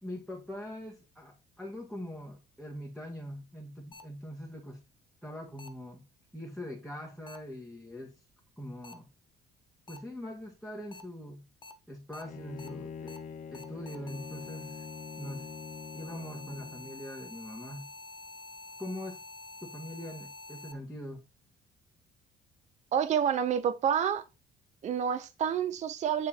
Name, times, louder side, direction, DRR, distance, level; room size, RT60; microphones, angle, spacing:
voice 1, 0.0-4.8 5.2-6.0 6.3-8.2 8.6-9.1 9.9-11.5 11.9-13.2 13.5-14.9 15.2-15.5 15.9-17.9 18.8-19.2 19.6-21.2, left 1 dB, ahead, 1.6 m, -42 dB
sound 1, 3.9-4.0 5.6-5.7 7.3-7.4 8.8-8.9 9.9-10.0 10.9-11.0 11.6-11.7 12.1-12.2 12.6-12.7 13.1-13.2 13.5-20.7, left 3 dB, 25° left, 1.1 m, -47 dB
Bowed string instrument, 12.2-17.0, left 6 dB, 50° left, 1.3 m, -44 dB
voice 2, 22.9-24.2 24.8-26.3, right 8 dB, 45° right, 0.6 m, -28 dB
9.5 x 3.5 x 4.4 m
cardioid pair, 110°, 17 cm